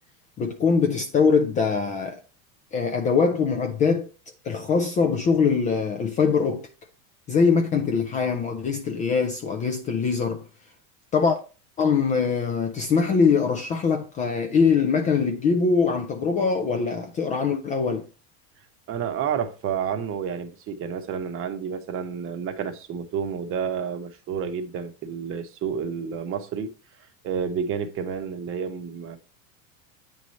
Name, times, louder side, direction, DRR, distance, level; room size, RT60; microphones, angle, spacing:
voice 1, 0.4-2.2 2.7-4.1 4.4-6.7 7.3-10.5 11.1-11.4 11.8-18.1, left 5 dB, 20° left, 0.3 m, -22 dB
voice 2, 18.9-26.7 27.2-29.2, right 7 dB, 30° right, 0.9 m, -30 dB
8.8 x 3.2 x 4.1 m
supercardioid pair, 140°, 44 cm